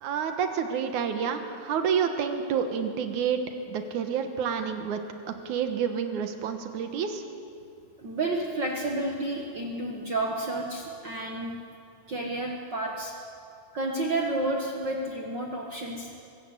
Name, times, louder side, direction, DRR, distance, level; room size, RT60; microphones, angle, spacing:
voice 1, 0.0-3.4 3.7-5.0 5.3-7.2, right 7 dB, 90° right, 6 dB, 2.7 m, -29 dB
voice 2, 8.0-11.5 12.1-13.1 13.7-16.1, right 2 dB, 45° right, 0 dB, 1.7 m, -31 dB
23.5 x 14.0 x 8.2 m, 2.5 s
omnidirectional pair, 3.3 m